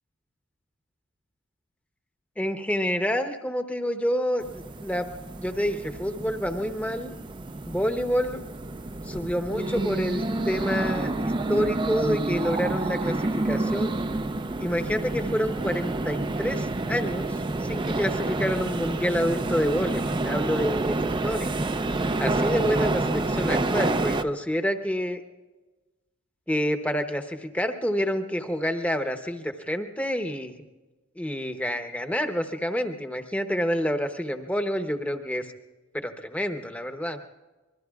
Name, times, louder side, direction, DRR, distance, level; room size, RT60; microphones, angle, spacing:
voice 1, 2.4-5.1 5.3-7.1 7.7-8.4 9.0-14.0 14.6-21.5 22.2-25.2 26.5-30.5 31.2-35.5 35.9-37.2, equal, 5° left, 6 dB, 0.8 m, -28 dB
sound 1, 4.4-24.2, right 2 dB, 20° right, 0.4 m, -28 dB
25.5 x 21.5 x 2.4 m, 1.2 s
head